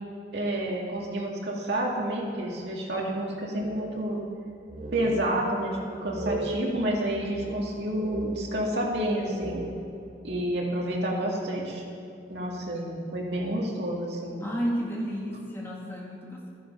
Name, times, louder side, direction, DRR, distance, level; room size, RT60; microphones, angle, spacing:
voice 1, 0.3-4.2 4.9-9.6 10.2-11.8 12.3-14.4, right 1 dB, 70° right, -2 dB, 2.1 m, -29 dB
sound 1, 3.6-4.4 4.7-5.6 6.1-8.9 9.1-10.2, right 1 dB, 50° right, 1.3 m, -37 dB
voice 2, 14.4-16.5, equal, 15° left, -3 dB, 1.8 m, -32 dB
11.5 x 10.0 x 5.5 m, 2.6 s
head